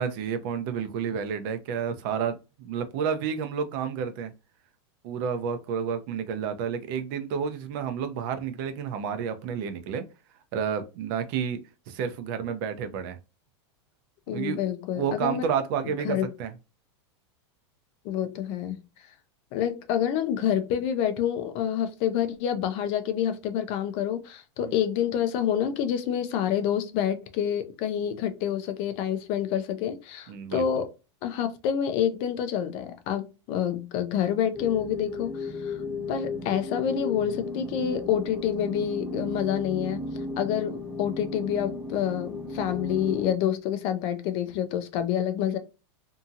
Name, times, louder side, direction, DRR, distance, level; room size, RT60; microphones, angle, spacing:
voice 1, 0.0-4.3 5.0-10.0 10.5-11.6 11.9-13.2 14.3-14.6 14.9-16.5 24.6-24.7 30.3-30.6, right 7 dB, 45° right, 0.6 m, -30 dB
voice 2, 14.3-15.5 15.8-16.3 18.0-18.8 19.5-30.9 31.2-35.8 36.1-40.0 40.4-45.6, left 9 dB, 40° left, 0.4 m, -28 dB
sound 1, 34.5-43.3, left 3 dB, 5° right, 1.3 m, -35 dB
2.8 x 2.7 x 2.3 m
supercardioid pair, 155°, 15 cm